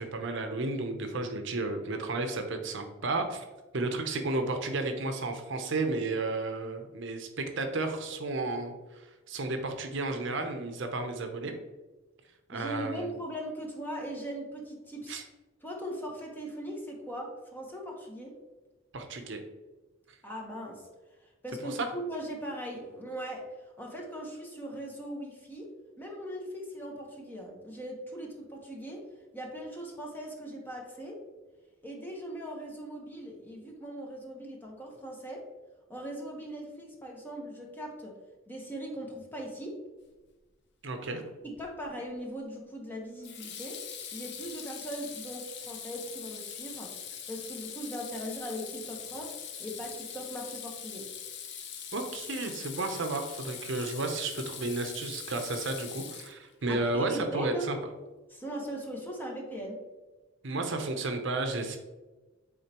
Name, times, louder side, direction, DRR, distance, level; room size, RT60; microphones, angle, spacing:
voice 1, 0.0-3.4 3.7-11.5 12.5-13.1 15.1-15.2 18.9-19.4 21.6-21.9 40.8-41.2 51.9-57.8 60.4-61.8, right 2 dB, 65° right, 5 dB, 0.7 m, -32 dB
voice 2, 12.5-15.2 15.6-18.3 20.2-20.9 21.2-23.4 23.8-25.7 26.0-29.0 29.3-31.2 31.8-35.4 35.9-38.1 38.5-39.8 41.4-43.8 44.1-46.9 47.3-49.3 49.6-51.1 56.7-57.7 58.3-59.8, equal, 10° left, -1 dB, 1.1 m, -39 dB
Water tap faucet / Sink (filling or washing), 41.6-41.9 43.2-56.7, left 8 dB, 60° left, 0.7 m, -42 dB
8.6 x 3.7 x 2.9 m, 1.2 s
head